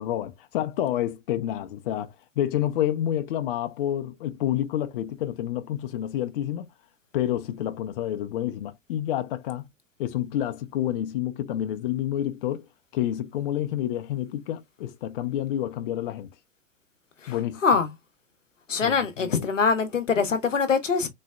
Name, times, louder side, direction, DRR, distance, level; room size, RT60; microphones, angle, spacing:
voice 1, 0.0-6.7 7.1-9.7 10.0-12.7 12.9-16.3 17.3-17.6 18.8-19.5, left 11 dB, 45° left, 0.5 m, -29 dB
voice 2, 18.7-21.1, left 5 dB, 80° left, 0.8 m, -23 dB
4.0 x 2.0 x 2.2 m
figure-of-eight pair, 95°, 38 cm